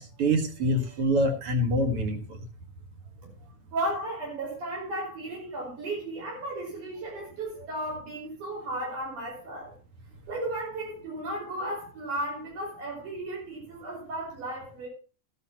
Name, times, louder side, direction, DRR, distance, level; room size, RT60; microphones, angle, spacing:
voice 1, 0.0-2.4, equal, 50° right, 5 dB, 2.5 m, -26 dB
voice 2, 3.7-9.7 10.3-14.9, right 1 dB, 75° right, -2 dB, 6.8 m, -34 dB
14.5 x 12.0 x 3.0 m, 0.35 s
omnidirectional pair, 3.5 m